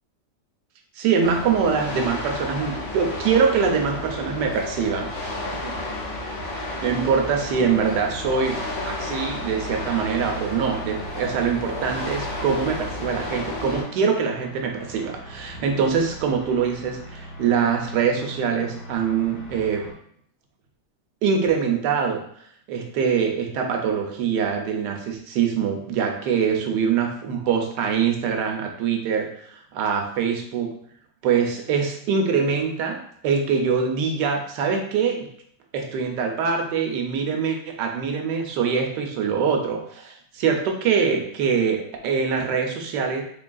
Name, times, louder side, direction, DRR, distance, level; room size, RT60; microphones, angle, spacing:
voice 1, 1.0-5.3 5.6-5.7 6.8-8.6 8.9-19.8 21.2-22.2 22.7-30.7 31.2-33.0 33.2-35.2 35.7-43.2, right 6 dB, 75° right, 3 dB, 1.2 m, -24 dB
sound 1, 1.2-13.8, left 2 dB, 85° left, 1.6 m, -32 dB
sound 2, 3.5-19.9, equal, 65° left, 1.4 m, -41 dB
3.8 x 3.5 x 2.3 m, 0.66 s
omnidirectional pair, 1.9 m